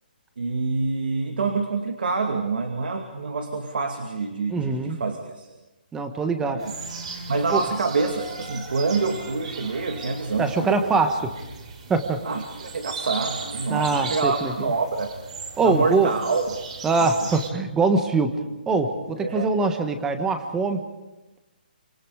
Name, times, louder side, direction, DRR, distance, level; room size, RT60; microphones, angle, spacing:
voice 1, 0.4-5.5 6.4-6.7 7.3-10.9 12.2-15.1 15.6-16.6 19.2-19.5, right 4 dB, 70° right, 5 dB, 2.4 m, -26 dB
voice 2, 4.5-5.0 5.9-6.6 7.5-7.6 10.4-11.2 11.9-12.2 13.7-14.7 15.6-16.1 16.8-20.8, right 3 dB, 10° right, 7 dB, 1.4 m, -23 dB
sound 1, 6.6-17.5, right 4 dB, 40° right, 4.7 m, -37 dB
26.0 x 26.0 x 5.0 m, 1.1 s
hypercardioid pair, 165°, 5 cm